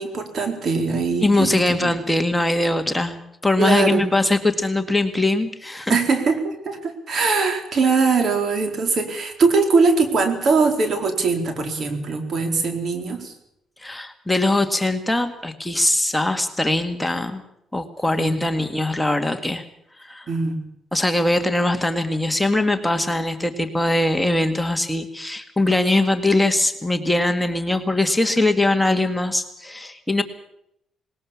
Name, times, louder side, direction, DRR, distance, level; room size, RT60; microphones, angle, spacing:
voice 1, 0.0-1.9 3.6-4.1 5.9-13.3 18.1-18.4 20.3-20.6, right 4 dB, 55° right, 6 dB, 4.3 m, -21 dB
voice 2, 1.2-6.0 13.8-17.4 17.7-19.7 20.0-20.3 20.9-30.2, left 2 dB, 10° left, 7 dB, 1.9 m, -21 dB
20.0 x 19.5 x 7.2 m, 0.76 s
cardioid pair, 90°, 0 cm